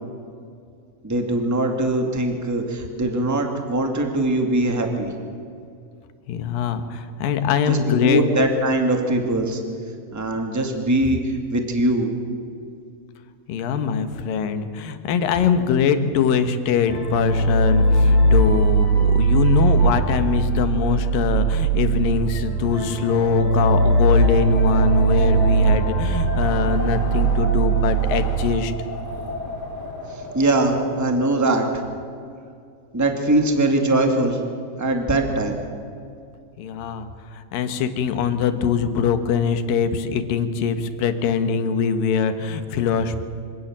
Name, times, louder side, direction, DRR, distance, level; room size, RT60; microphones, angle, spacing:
voice 1, 1.0-5.1 7.7-9.6 10.1-12.1 30.1-31.8 32.9-34.4 34.8-35.6, right 2 dB, 5° right, 4 dB, 1.5 m, -21 dB
voice 2, 6.3-8.3 13.5-28.7 36.6-43.2, left 7 dB, 75° left, 9 dB, 3.0 m, -22 dB
sound 1, 16.9-28.6, right 3 dB, 60° right, 8.8 m, -20 dB
Wind, 23.0-31.4, left 1 dB, 30° left, 3.5 m, -32 dB
25.5 x 17.5 x 7.4 m, 2.4 s
omnidirectional pair, 4.1 m